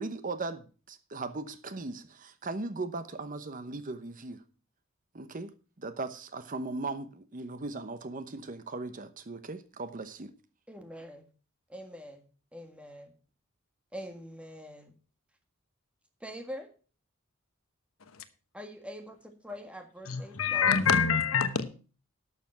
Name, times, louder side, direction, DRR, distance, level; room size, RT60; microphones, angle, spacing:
voice 1, 0.0-4.4 5.1-5.5 5.8-10.3, right 3 dB, 40° right, 0.9 m, -38 dB
voice 2, 10.7-11.3 11.7-13.2 13.9-14.9 16.2-16.7 18.5-20.8, equal, 5° right, 1.7 m, -44 dB
voice 3, 20.0-21.7, left 6 dB, 75° left, 1.1 m, -26 dB
12.0 x 7.0 x 5.8 m
head